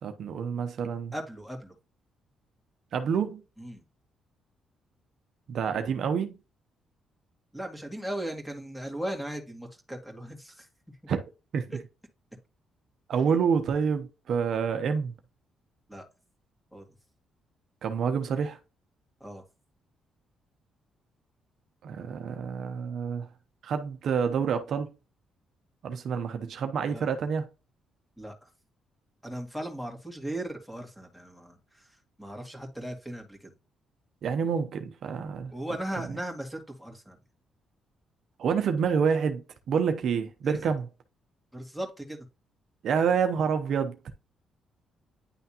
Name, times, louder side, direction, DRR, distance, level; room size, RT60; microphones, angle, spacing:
voice 1, 0.0-1.1 2.9-3.4 5.5-6.4 11.1-11.2 11.5-11.7 13.1-15.1 17.8-18.6 21.8-23.3 23.6-24.9 25.8-27.5 34.2-35.5 38.4-40.8 42.8-44.0, right 6 dB, 65° right, 0.8 m, -28 dB
voice 2, 1.1-1.8 3.6-3.8 7.5-10.7 11.7-11.8 15.9-16.0 16.7-16.8 19.2-19.4 26.9-27.1 28.2-28.5 29.2-33.5 35.5-37.2 40.5-40.7 41.5-42.2, right 1 dB, 5° left, 2.0 m, -37 dB
9.9 x 3.4 x 2.9 m
cardioid pair, 90°, 0 cm